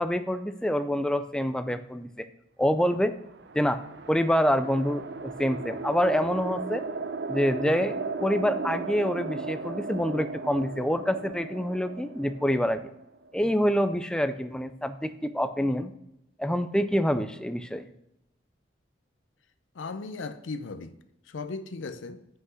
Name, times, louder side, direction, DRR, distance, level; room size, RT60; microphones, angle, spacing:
voice 1, 0.0-2.3 2.6-3.1 3.5-3.8 4.1-6.8 7.3-12.8 13.3-15.9 16.4-17.9, equal, 5° left, 0.4 m, -26 dB
sound 1, 3.1-13.5, right 4 dB, 60° right, 0.5 m, -36 dB
voice 2, 19.8-20.9 21.3-22.2, left 3 dB, 80° left, 0.5 m, -36 dB
5.8 x 5.5 x 6.2 m
head